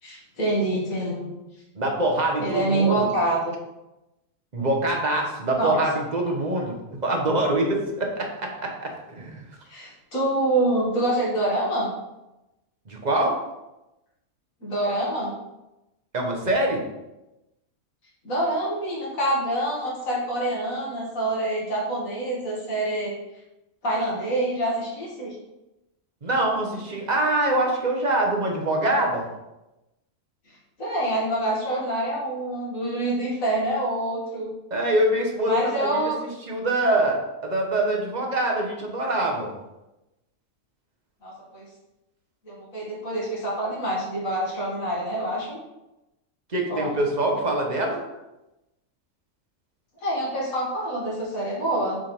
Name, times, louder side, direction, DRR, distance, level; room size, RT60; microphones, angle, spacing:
voice 1, 0.0-1.3 2.4-3.5 5.6-5.8 9.7-11.9 14.6-15.3 18.2-23.1 23.8-25.3 30.8-34.5 35.4-36.2 41.2-41.6 42.4-45.6 46.7-47.0 50.0-52.0, right 1 dB, 65° left, -4 dB, 2.5 m, -26 dB
voice 2, 1.7-3.1 4.5-6.7 7.0-8.7 9.1-9.4 12.9-13.4 16.1-16.8 26.2-29.3 34.7-35.9 36.2-39.5 46.5-48.0, right 1 dB, 30° right, 0 dB, 1.2 m, -24 dB
7.6 x 3.7 x 4.5 m, 0.96 s
omnidirectional pair, 1.5 m